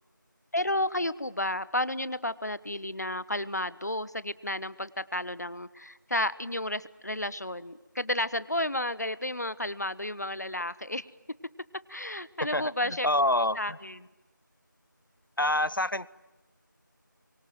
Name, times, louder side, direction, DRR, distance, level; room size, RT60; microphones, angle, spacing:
voice 1, 0.5-11.1 11.9-13.1 13.6-14.0, left 1 dB, 55° left, 1.1 m, -32 dB
voice 2, 12.5-13.8 15.4-16.1, left 1 dB, 80° left, 1.0 m, -27 dB
26.5 x 24.0 x 9.2 m
figure-of-eight pair, 175°, 11 cm